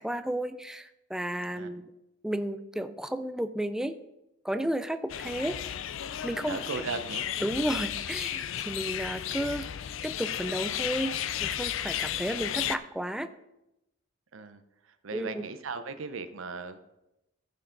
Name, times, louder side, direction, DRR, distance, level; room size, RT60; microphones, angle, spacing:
voice 1, 0.0-1.9 2.2-4.0 4.4-5.9 6.2-6.6 7.4-9.7 10.0-13.3 15.1-15.4, right 1 dB, 5° right, 10 dB, 0.4 m, -33 dB
sound 1, 5.1-12.8, left 10 dB, 70° left, 0.4 m, -34 dB
voice 2, 6.5-7.2 14.3-14.6 15.0-16.8, right 4 dB, 80° right, 10 dB, 0.7 m, -37 dB
14.5 x 6.6 x 3.9 m, 0.91 s
head